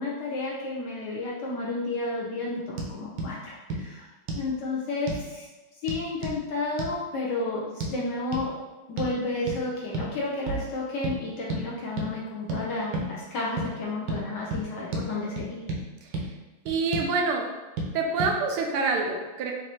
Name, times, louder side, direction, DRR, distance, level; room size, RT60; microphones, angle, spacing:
voice 1, 0.0-4.1 4.3-5.5 5.8-8.5 8.9-15.6, left 2 dB, 70° left, -4 dB, 1.1 m, -31 dB
sound 1, 2.8-2.9 3.2-3.3 3.7-3.8 4.3-4.5 5.1-5.3 5.9-6.4 6.8-6.9 7.8-7.9 8.3-8.5 9.0-9.2 9.5-9.6 9.9-10.1 10.5-10.7 11.0-11.2 11.5-11.6 12.0-12.1 12.5-12.6 12.9-13.1 13.6-13.7 14.1-14.2 14.5-14.6 14.9-15.1 15.4-15.8 16.1-16.3 16.7-17.1 17.8-17.9 18.2-18.3, right 2 dB, 70° right, 1.3 m, -31 dB
voice 2, 16.6-17.5 17.9-19.5, right 4 dB, 85° right, 2 dB, 1.6 m, -26 dB
5.3 x 2.6 x 2.9 m, 1.2 s
omnidirectional pair, 2.4 m